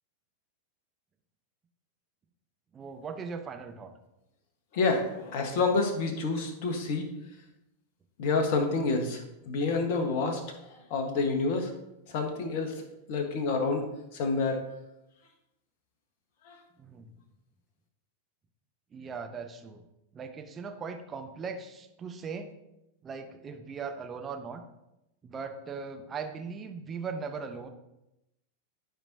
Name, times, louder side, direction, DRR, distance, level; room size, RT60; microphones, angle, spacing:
voice 1, 2.7-3.9 16.8-17.1 18.9-19.8 20.1-22.5 23.0-24.6 25.2-27.7, right 5 dB, 20° right, 6 dB, 0.8 m, -39 dB
voice 2, 4.7-7.1 8.2-11.7 12.1-12.8 13.1-14.6 16.4-16.6, left 3 dB, 50° left, 5 dB, 1.3 m, -28 dB
11.5 x 5.1 x 2.7 m, 0.89 s
figure-of-eight pair, 90°, 0 cm